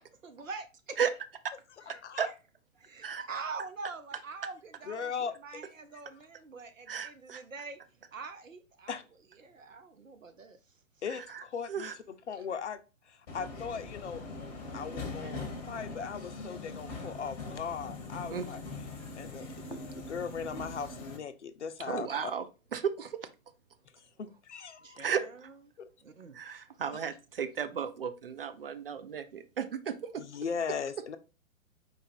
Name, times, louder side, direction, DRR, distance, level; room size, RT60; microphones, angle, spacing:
voice 1, 0.2-1.0 1.9-2.0 2.3-2.4 2.8-7.8 8.1-9.0 9.3-10.8 24.8-25.6 26.0-26.4, right 4 dB, 70° right, 0.9 m, -44 dB
voice 2, 4.9-5.3 8.9-9.0 11.0-11.9 12.3-12.8 13.0-14.2 14.7-18.6 19.2-22.3 24.2-25.1 25.8-25.9 30.2-31.2, left 6 dB, 60° left, 0.6 m, -38 dB
voice 3, 6.9-7.4 11.3-11.4 11.7-11.9 14.7-14.8 15.2-15.3 18.3-18.5 21.8-22.5 22.7-23.2 25.0-25.2 26.3-30.2, right 7 dB, 45° right, 0.5 m, -34 dB
Subway metro underground, 13.3-21.2, left 3 dB, 30° left, 1.0 m, -42 dB
4.6 x 2.6 x 4.2 m
figure-of-eight pair, 120°, 40 cm